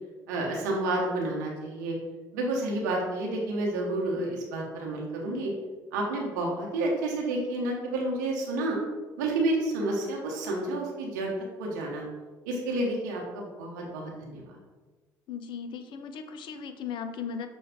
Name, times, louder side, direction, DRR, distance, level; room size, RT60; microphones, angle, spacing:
voice 1, 0.3-1.9 2.3-5.5 5.9-8.8 9.2-11.3 11.6-12.1 12.5-14.5, right 2 dB, 85° right, -1 dB, 0.9 m, -30 dB
voice 2, 15.3-17.5, left 6 dB, 55° left, 8 dB, 0.5 m, -37 dB
6.0 x 2.3 x 3.5 m, 1.3 s
hypercardioid pair, 60°, 10 cm